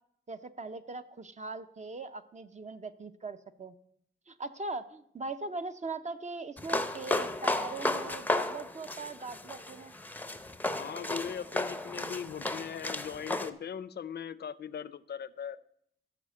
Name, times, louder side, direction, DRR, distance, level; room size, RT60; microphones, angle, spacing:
voice 1, 0.3-3.8 4.3-9.9, right 3 dB, 35° right, 10 dB, 0.5 m, -40 dB
sound 1, 6.6-13.5, left 2 dB, 10° left, 0.5 m, -34 dB
voice 2, 10.7-15.6, left 8 dB, 55° left, 17 dB, 0.5 m, -39 dB
14.0 x 5.0 x 7.4 m, 0.72 s
wide cardioid pair, 160°, 21 cm